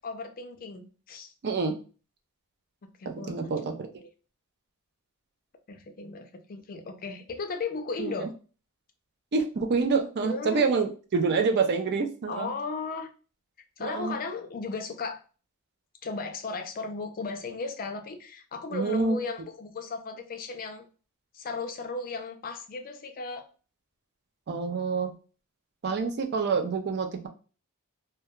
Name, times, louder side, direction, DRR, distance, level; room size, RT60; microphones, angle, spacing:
voice 1, 0.0-1.3 3.0-3.5 4.0-4.1 5.7-8.3 10.2-10.7 12.3-13.1 13.8-15.2 16.0-20.8 21.3-23.5, left 4 dB, 40° left, 6 dB, 0.4 m, -36 dB
voice 2, 1.4-1.7 3.1-3.7 8.0-8.3 9.3-12.5 13.8-14.2 18.7-19.2 24.5-25.1 25.8-27.3, right 4 dB, 50° right, 5 dB, 0.4 m, -27 dB
2.3 x 2.2 x 2.9 m, 0.37 s
head